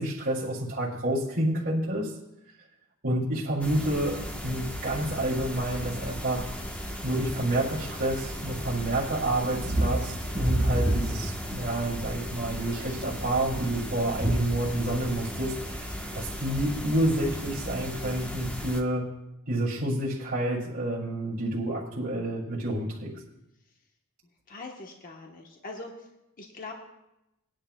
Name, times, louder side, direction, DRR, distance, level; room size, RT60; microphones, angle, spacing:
voice 1, 0.0-2.1 3.0-6.5 7.0-19.1 19.5-23.1, right 1 dB, 55° right, -9 dB, 2.6 m, -29 dB
sound 1, 3.6-18.8, equal, 5° left, 1.0 m, -37 dB
sound 2, 9.5-12.1 12.7-13.1 13.4-13.5 14.2-14.5, right 1 dB, 25° right, 1.0 m, -27 dB
voice 2, 24.5-26.1 26.4-26.7, left 3 dB, 40° left, 1 dB, 1.1 m, -42 dB
21.0 x 10.5 x 2.2 m, 0.89 s
head